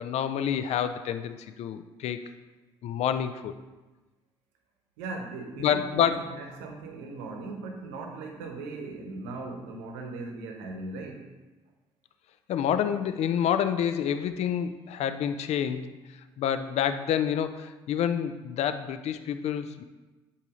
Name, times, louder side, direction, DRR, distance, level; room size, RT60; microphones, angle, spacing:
voice 1, 0.0-2.2 2.8-3.5 5.6-6.4 12.5-16.0 16.4-19.8, left 9 dB, 55° left, 11 dB, 0.5 m, -28 dB
voice 2, 5.0-11.3, right 3 dB, 75° right, 3 dB, 0.9 m, -38 dB
8.1 x 2.8 x 4.9 m, 1.2 s
hypercardioid pair, 55°, 13 cm